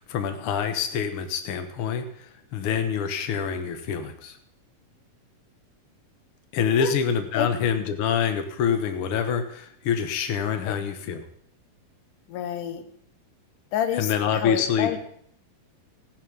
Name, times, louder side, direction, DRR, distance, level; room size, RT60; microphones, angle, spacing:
voice 1, 0.0-4.4 6.5-11.2 14.0-15.0, left 7 dB, 55° left, 8 dB, 1.6 m, -26 dB
voice 2, 12.3-12.8 13.7-15.0, left 9 dB, 70° left, 8 dB, 2.5 m, -28 dB
16.0 x 10.0 x 5.5 m, 0.67 s
omnidirectional pair, 4.0 m